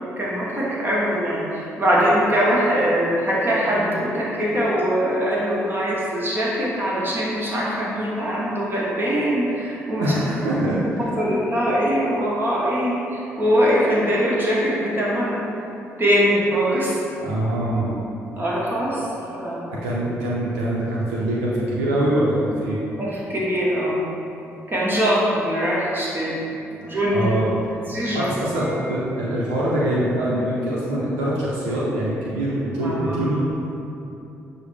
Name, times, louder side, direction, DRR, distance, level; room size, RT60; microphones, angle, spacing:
voice 1, 0.0-10.1 11.0-15.7 16.0-16.9 18.4-19.1 19.3-19.6 23.0-24.0 24.7-26.3 26.9-27.3 27.9-28.3 32.8-33.3, equal, 30° right, -6 dB, 1.0 m, -22 dB
voice 2, 10.0-11.0 17.2-17.9 19.7-22.8 26.7-27.5 28.1-33.4, right 1 dB, 85° right, -6 dB, 0.5 m, -24 dB
6.1 x 2.0 x 3.3 m, 2.9 s
hypercardioid pair, 45°, 7 cm